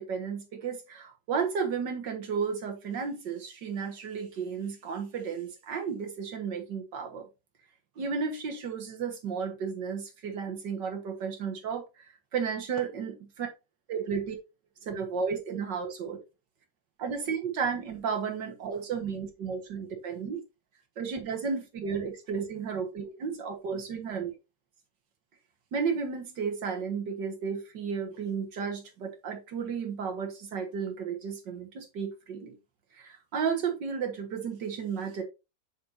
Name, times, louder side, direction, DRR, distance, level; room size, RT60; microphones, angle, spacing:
voice 1, 0.0-7.2 8.0-11.8 12.3-13.5 13.9-14.4 14.8-16.2 17.0-20.4 21.0-24.3 25.7-32.5 33.0-35.2, right 6 dB, 90° right, 2.2 m, -33 dB
6.7 x 6.6 x 2.8 m
omnidirectional pair, 1.9 m